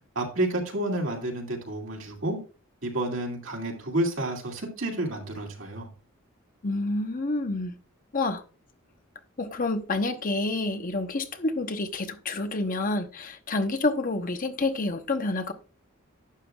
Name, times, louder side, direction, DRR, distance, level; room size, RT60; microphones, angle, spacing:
voice 1, 0.2-2.4 2.8-5.9, right 1 dB, 65° right, 2.5 m, -30 dB
voice 2, 6.6-7.7 8.1-8.4 9.4-15.5, left 2 dB, 40° left, 0.9 m, -28 dB
11.5 x 7.7 x 2.4 m
head